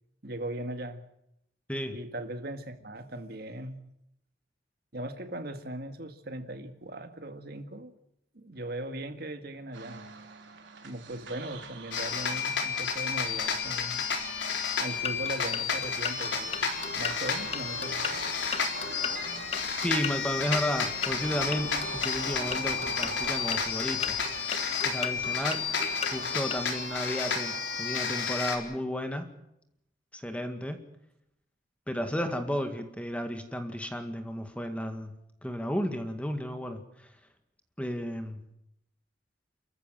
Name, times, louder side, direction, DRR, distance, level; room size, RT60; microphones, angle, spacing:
voice 1, 0.2-1.0 1.9-3.8 4.9-7.9 8.3-10.1 10.8-14.0 14.8-16.7 16.9-18.1, right 1 dB, 55° right, 7 dB, 1.9 m, -39 dB
sound 1, 9.7-28.2, right 3 dB, 75° right, 3.4 m, -45 dB
sound 2, 11.9-28.6, left 6 dB, 70° left, 4.2 m, -31 dB
sound 3, 14.9-26.6, left 6 dB, 35° left, 1.3 m, -39 dB
voice 2, 19.8-24.2 24.8-25.7 26.0-29.3 30.1-30.8 31.9-35.1 35.4-37.1 37.8-38.4, equal, 5° left, 6 dB, 2.0 m, -33 dB
29.5 x 14.5 x 7.6 m, 0.79 s
head